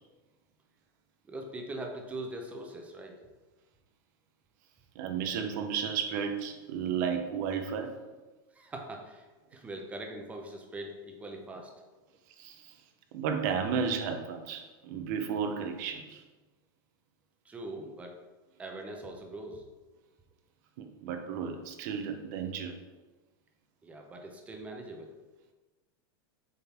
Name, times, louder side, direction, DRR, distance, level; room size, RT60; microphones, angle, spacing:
voice 1, 1.3-3.2 8.5-11.7 17.4-18.2 18.6-19.7 23.8-25.1, right 1 dB, 10° right, 2 dB, 0.8 m, -42 dB
voice 2, 4.9-8.0 12.4-12.7 13.1-16.2 20.8-22.8, right 7 dB, 55° right, 6 dB, 0.8 m, -33 dB
7.1 x 3.8 x 4.4 m, 1.2 s
supercardioid pair, 160°, 12 cm